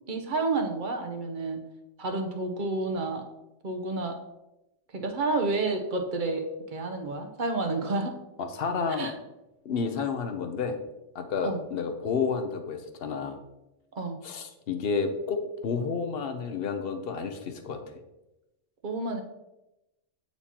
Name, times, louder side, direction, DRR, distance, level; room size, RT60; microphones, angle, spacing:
voice 1, 0.1-1.6 2.0-3.2 3.6-4.2 4.9-8.1 8.9-9.1 11.4-11.6 14.0-14.2 18.8-19.2, right 3 dB, 45° right, 4 dB, 0.8 m, -30 dB
voice 2, 8.4-9.1 9.6-10.8 11.1-13.4 14.2-17.8, left 5 dB, 55° left, 6 dB, 0.9 m, -30 dB
8.5 x 4.3 x 2.8 m, 0.95 s
omnidirectional pair, 1.3 m